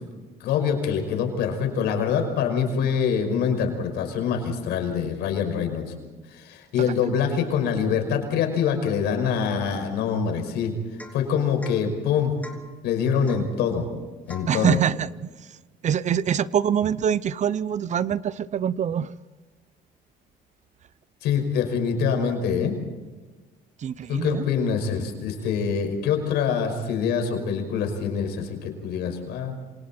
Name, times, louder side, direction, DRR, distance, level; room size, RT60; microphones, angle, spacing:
voice 1, 0.4-5.9 6.3-10.8 11.1-12.4 12.8-13.9 14.3-14.8 21.2-22.8 24.1-29.5, left 7 dB, 85° left, 5 dB, 5.5 m, -25 dB
Domestic sounds home sounds / Chink clink / Drip, 11.0-11.3 11.6-11.8 12.4-12.7 13.3-13.5 14.3-14.6, left 1 dB, 10° left, 3.5 m, -42 dB
voice 2, 14.5-15.1 15.8-19.1 23.8-24.4, right 8 dB, 45° right, 18 dB, 0.7 m, -24 dB
27.5 x 27.0 x 4.5 m, 1.3 s
cardioid pair, 110°, 17 cm